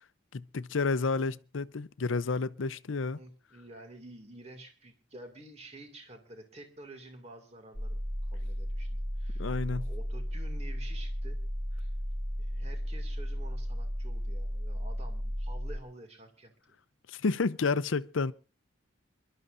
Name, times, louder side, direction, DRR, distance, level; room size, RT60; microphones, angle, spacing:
voice 1, 0.3-3.2 9.4-9.9 17.1-18.3, left 4 dB, 85° left, 0.6 m, -30 dB
voice 2, 3.1-9.4 9.7-11.4 11.7-11.9 12.4-16.8, right 1 dB, 35° right, 2.3 m, -50 dB
sound 1, 7.7-15.8, equal, 15° right, 0.8 m, -34 dB
27.5 x 12.5 x 2.6 m
head